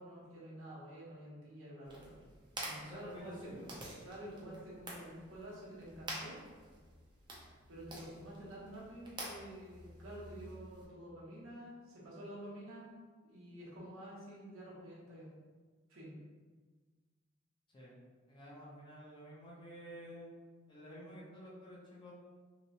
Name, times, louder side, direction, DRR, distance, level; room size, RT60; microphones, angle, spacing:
voice 1, 0.0-2.2 2.6-3.7 4.0-6.4 7.7-12.9 13.2-15.3 15.9-16.1, right 1 dB, 70° right, -6 dB, 0.9 m, -49 dB
sound 1, 1.8-10.8, right 1 dB, 25° right, 0.5 m, -49 dB
voice 2, 2.6-3.7 4.5-4.6 17.7-17.9 18.3-20.3 20.7-22.1, equal, 25° left, -6 dB, 0.6 m, -51 dB
2.9 x 2.1 x 2.6 m, 1.4 s
head